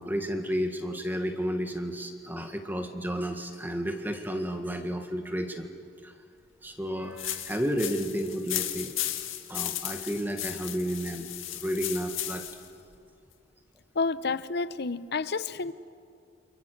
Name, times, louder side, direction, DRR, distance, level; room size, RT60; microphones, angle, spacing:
voice 1, 0.0-5.7 6.0-6.1 6.6-8.9 9.5-11.3 11.5-12.5, equal, 10° right, 5 dB, 1.8 m, -32 dB
sound 1, 7.2-12.7, left 13 dB, 80° left, 1.9 m, -35 dB
voice 2, 13.9-15.7, left 4 dB, 55° left, 15 dB, 0.8 m, -30 dB
29.5 x 27.5 x 6.7 m, 2.3 s
head